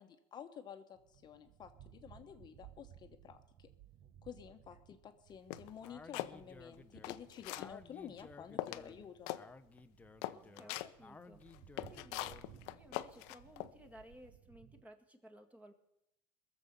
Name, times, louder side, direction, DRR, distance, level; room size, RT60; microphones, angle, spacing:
voice 1, 0.0-3.7 4.2-9.3, left 8 dB, 35° left, 6 dB, 1.1 m, -51 dB
sound 1, 1.0-14.8, right 10 dB, 55° right, 0.9 m, -61 dB
sound 2, 5.5-6.3 6.8-7.7 8.2-8.3 8.6-8.9 9.3-9.4 9.8-9.9 10.2-10.9 11.5-13.7, left 16 dB, 75° left, 0.7 m, -41 dB
Speech, 5.8-12.6, left 3 dB, 10° left, 0.7 m, -56 dB
voice 2, 10.3-11.4 11.9-12.2 12.7-15.7, equal, 10° right, 5 dB, 1.8 m, -58 dB
21.5 x 7.2 x 6.8 m, 0.83 s
supercardioid pair, 115°, 12 cm